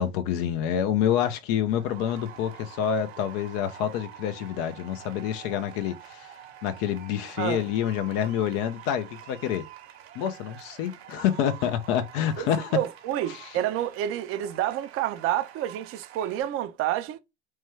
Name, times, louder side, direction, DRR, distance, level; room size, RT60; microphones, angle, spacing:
voice 1, 0.0-6.4 6.6-9.7 10.1-12.7 13.3-13.5, left 9 dB, 60° left, 0.6 m, -27 dB
sound 1, 1.4-16.4, right 10 dB, 75° right, 0.9 m, -47 dB
voice 2, 12.4-17.2, right 12 dB, 45° right, 0.6 m, -29 dB
3.1 x 2.2 x 3.1 m
hypercardioid pair, 85°, 32 cm